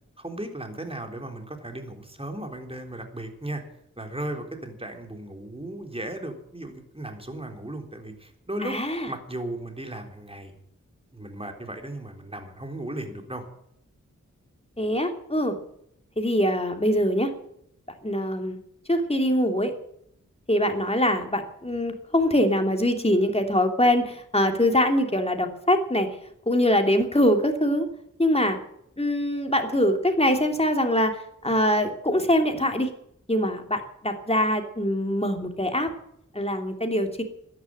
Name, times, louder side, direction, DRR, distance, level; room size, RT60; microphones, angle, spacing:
voice 1, 0.2-3.6 4.0-8.8 9.1-10.5 11.1-13.5, right 1 dB, 20° right, 4 dB, 3.6 m, -36 dB
voice 2, 8.6-9.1 14.8-15.5 16.2-17.3 18.0-18.6 18.9-19.7 20.5-26.1 26.5-27.9 28.2-28.6 29.0-31.2 31.4-32.9 33.3-35.9 36.3-37.2, left 1 dB, 20° left, 4 dB, 3.0 m, -23 dB
13.5 x 11.0 x 9.0 m, 0.74 s
wide cardioid pair, 50°, 30 cm